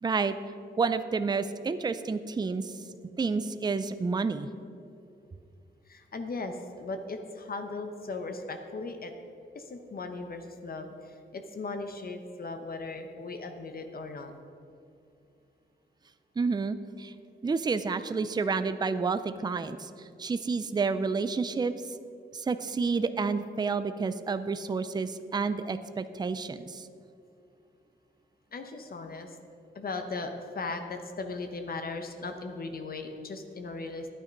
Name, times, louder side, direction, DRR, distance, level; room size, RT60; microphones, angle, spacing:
voice 1, 0.0-0.3 0.8-2.7 3.2-4.5 16.4-17.1 17.4-21.7 22.3-26.9, right 4 dB, 20° right, 12 dB, 0.4 m, -30 dB
voice 2, 5.9-9.1 9.5-14.3 28.5-29.4 29.7-34.1, left 3 dB, 50° left, 6 dB, 0.9 m, -38 dB
11.5 x 8.9 x 5.2 m, 2.6 s
wide cardioid pair, 110°, 19 cm